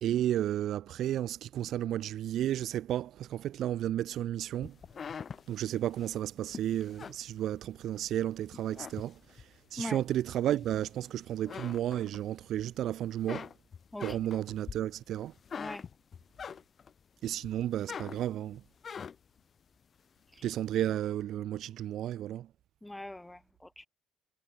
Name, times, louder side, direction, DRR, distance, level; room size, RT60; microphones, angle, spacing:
voice 1, 0.0-4.8 5.5-9.1 9.7-13.5 14.0-15.3 17.2-18.6 20.4-22.5, right 12 dB, 65° right, 0.9 m, -32 dB
sound 1, 4.6-8.0 8.5-9.6 10.1-11.1 11.4-12.6 13.0-17.0 17.4-19.4, left 6 dB, 45° left, 6.1 m, -44 dB
voice 2, 22.8-23.9, left 1 dB, 10° left, 1.4 m, -41 dB
supercardioid pair, 70°, 0 cm